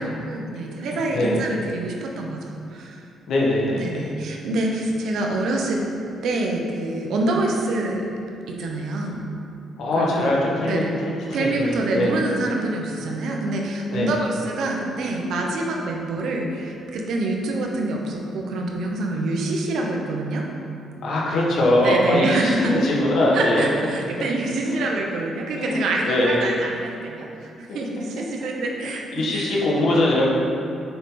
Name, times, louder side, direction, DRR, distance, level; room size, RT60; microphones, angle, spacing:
voice 1, 0.0-3.0 3.8-5.8 6.2-8.0 8.5-9.2 10.0-10.3 10.6-10.9 11.3-20.4 21.8-22.7 23.3-29.0 29.3-29.5 29.9-30.0, right 2 dB, 75° right, 0 dB, 1.0 m, -26 dB
voice 2, 0.8-1.4 3.3-4.1 9.8-12.1 13.9-14.1 21.0-23.6 24.7-24.8 25.6-26.4 27.7-27.8 29.1-30.3, left 1 dB, 70° left, -4 dB, 1.5 m, -22 dB
7.1 x 5.6 x 3.9 m, 2.6 s
cardioid pair, 90°, 0 cm